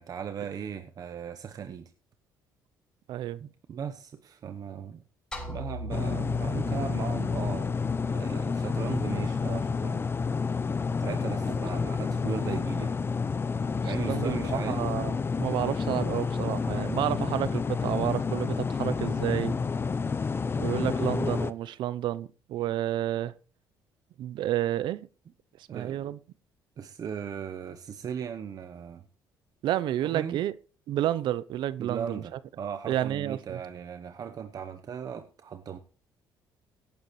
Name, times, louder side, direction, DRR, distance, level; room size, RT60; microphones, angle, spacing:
voice 1, 0.0-1.9 3.4-5.0 5.5-7.8 8.1-10.0 11.0-13.0 13.8-14.8 20.8-21.1 25.7-26.1 26.8-29.0 30.0-30.4 31.8-35.8, right 7 dB, 50° right, 0.9 m, -37 dB
voice 2, 3.1-3.4 11.5-11.6 13.9-19.5 20.6-23.3 24.2-25.1 25.7-26.2 29.6-30.5 30.9-32.2 32.9-33.6, right 12 dB, 75° right, 0.6 m, -30 dB
sound 1, 5.3-9.7, left 1 dB, 10° left, 6.9 m, -41 dB
sound 2, 5.9-21.5, left 5 dB, 30° left, 0.7 m, -29 dB
17.5 x 9.5 x 3.1 m
cardioid pair, 90°, 8 cm